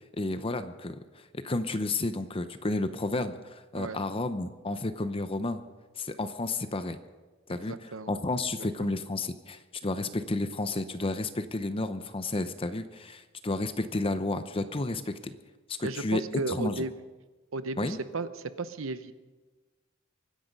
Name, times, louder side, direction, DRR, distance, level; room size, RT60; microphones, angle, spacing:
voice 1, 0.1-5.6 6.0-7.0 7.5-15.3 15.8-16.2 16.5-16.8 17.8-18.0, left 2 dB, 30° left, 10 dB, 0.7 m, -32 dB
voice 2, 7.7-8.1 8.6-8.9 15.8-16.9 17.5-18.3 18.6-19.1, right 3 dB, 90° right, 12 dB, 0.9 m, -34 dB
24.5 x 10.0 x 5.4 m, 1.3 s
head